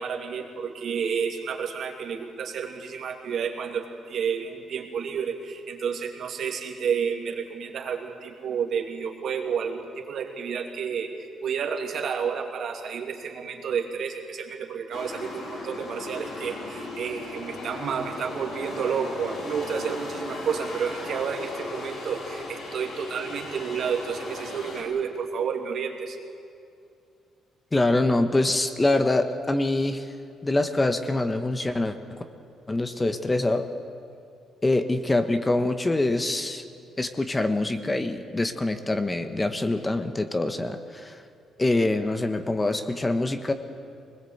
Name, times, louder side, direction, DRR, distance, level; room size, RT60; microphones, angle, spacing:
voice 1, 0.0-26.2, right 6 dB, 65° right, 2 dB, 2.6 m, -30 dB
sound 1, 14.9-24.8, left 2 dB, 65° left, 5.4 m, -37 dB
voice 2, 27.7-30.1 30.4-32.2 32.7-33.7 34.6-36.6 37.0-41.2 41.6-43.5, left 2 dB, 20° left, 8 dB, 1.3 m, -25 dB
21.5 x 20.0 x 8.1 m, 2.5 s
cardioid pair, 90°, 0 cm